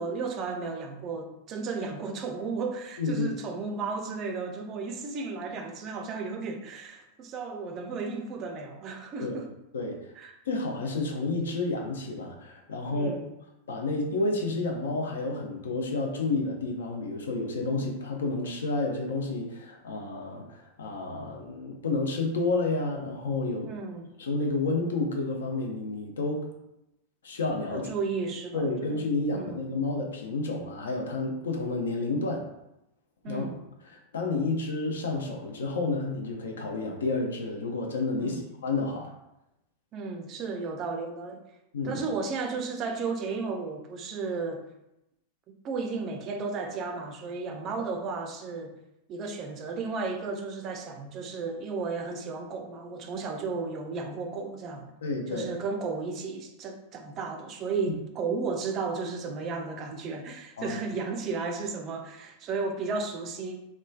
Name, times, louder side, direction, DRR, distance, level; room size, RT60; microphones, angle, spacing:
voice 1, 0.0-9.5 10.2-10.3 12.9-13.3 23.6-24.1 27.7-29.0 29.3-29.6 33.2-33.6 38.2-38.5 39.9-41.4 41.8-44.6 45.6-48.7 49.1-54.9 55.3-63.6, right 4 dB, 35° right, 4 dB, 0.4 m, -34 dB
voice 2, 3.0-3.3 9.2-9.4 9.7-10.0 10.5-13.1 13.7-23.7 24.2-26.4 27.2-27.9 28.5-32.4 33.3-33.5 33.9-39.1 41.7-42.0 55.0-55.5 60.6-60.8, left 3 dB, 65° left, 2 dB, 0.4 m, -30 dB
3.1 x 2.2 x 2.3 m, 0.87 s
figure-of-eight pair, 90°, 0 cm